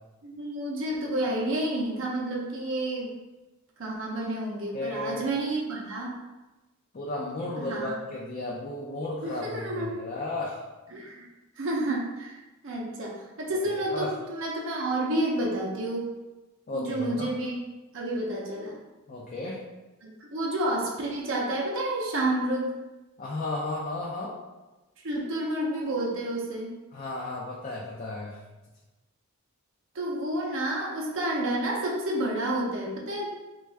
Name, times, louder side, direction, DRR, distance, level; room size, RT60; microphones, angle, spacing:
voice 1, 0.2-3.2 3.8-6.2 7.7-8.0 9.2-10.0 10.9-11.3 11.6-12.4 12.6-16.1 16.7-17.6 17.9-18.8 20.0-22.7 25.0-26.7 29.9-33.3, right 1 dB, 60° right, -2 dB, 0.5 m, -30 dB
voice 2, 4.7-5.2 6.9-10.6 13.5-13.6 13.9-14.1 16.7-17.3 19.1-19.6 23.2-24.4 26.9-28.4, left 2 dB, 35° left, -4 dB, 0.4 m, -34 dB
3.5 x 2.3 x 3.2 m, 1.1 s
head